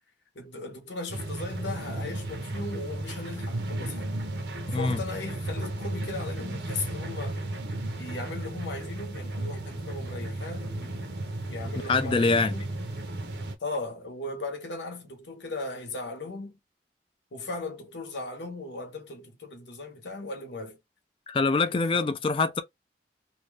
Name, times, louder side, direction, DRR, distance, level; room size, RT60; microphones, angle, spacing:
voice 1, 0.3-4.1 4.8-7.4 8.0-11.1 11.5-12.7 13.6-16.6 17.3-20.8 21.9-22.1, left 2 dB, 85° left, 0.9 m, -37 dB
sound 1, 1.1-13.6, right 1 dB, 75° right, 0.7 m, -34 dB
voice 2, 4.7-5.0 11.9-12.5 21.3-22.6, left 3 dB, 30° left, 0.3 m, -24 dB
2.7 x 2.3 x 3.2 m
head